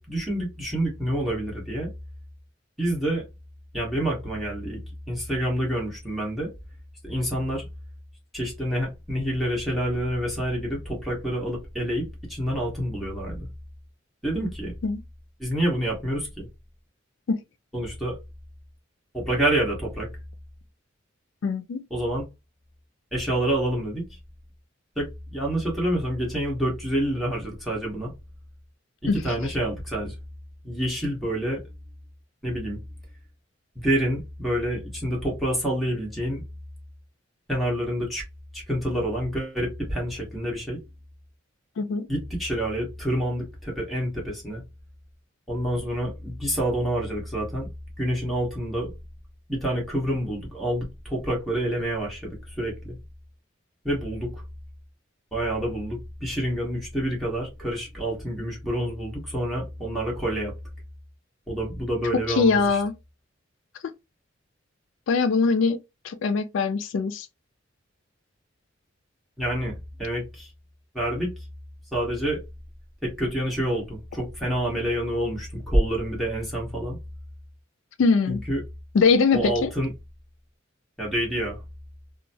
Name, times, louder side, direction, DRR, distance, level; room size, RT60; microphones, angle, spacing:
voice 1, 0.0-1.9 2.8-3.2 3.7-4.8 5.1-6.5 7.0-7.7 8.3-13.5 14.2-14.7 15.4-16.5 17.7-18.2 19.1-20.1 21.9-22.2 23.1-24.1 24.9-28.1 29.0-30.1 30.6-31.6 32.4-32.8 33.7-36.4 37.5-38.2 38.5-40.8 42.1-44.6 45.5-47.7 48.0-48.9 49.5-53.0 53.8-54.4 55.3-60.5 61.5-62.8 69.4-70.5 70.9-71.3 71.9-72.4 73.0-77.0 78.3-78.6 79.3-79.9 81.0-81.6, right 1 dB, ahead, 1.4 m, -27 dB
voice 2, 21.4-21.8 29.1-29.2 41.8-42.1 62.3-62.9 65.1-65.8 66.0-67.3 78.0-78.4 78.9-79.7, left 4 dB, 70° left, 0.4 m, -22 dB
3.0 x 2.2 x 2.6 m
head